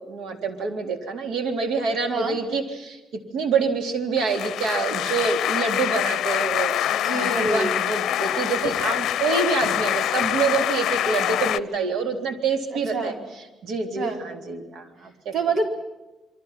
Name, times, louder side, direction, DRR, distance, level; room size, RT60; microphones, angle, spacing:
voice 1, 0.0-3.0 3.3-13.1 13.6-15.3, right 4 dB, 85° right, 5 dB, 3.8 m, -26 dB
sound 1, 4.2-11.6, left 12 dB, 85° left, 0.8 m, -25 dB
voice 2, 6.8-7.7 12.9-13.2 14.0-14.2 15.3-15.7, right 3 dB, 50° right, 4 dB, 4.2 m, -26 dB
28.5 x 23.5 x 5.9 m, 1.0 s
cardioid pair, 170°, 0 cm